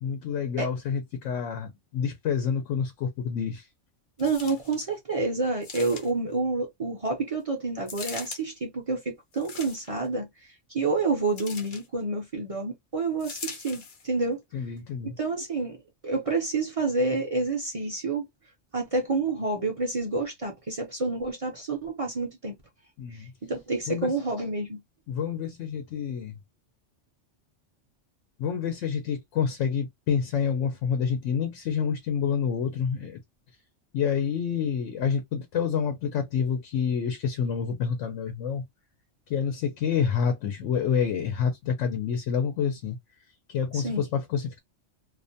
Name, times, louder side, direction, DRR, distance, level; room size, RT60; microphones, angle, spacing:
voice 1, 0.0-3.7 14.5-15.1 23.0-23.3 23.9-24.1 25.1-26.4 28.4-33.2 33.9-38.6 39.3-43.0 43.5-44.6, left 7 dB, 85° left, 0.9 m, -28 dB
sound 1, 4.2-4.8 5.6-6.3 7.9-8.4 9.3-10.1 11.4-11.9 13.2-14.1 14.8-14.9, left 5 dB, 50° left, 0.7 m, -41 dB
voice 2, 4.2-14.4 15.2-18.3 18.7-22.6 23.1-24.8 43.7-44.0, right 3 dB, 40° right, 0.5 m, -29 dB
2.5 x 2.1 x 2.6 m
omnidirectional pair, 1.2 m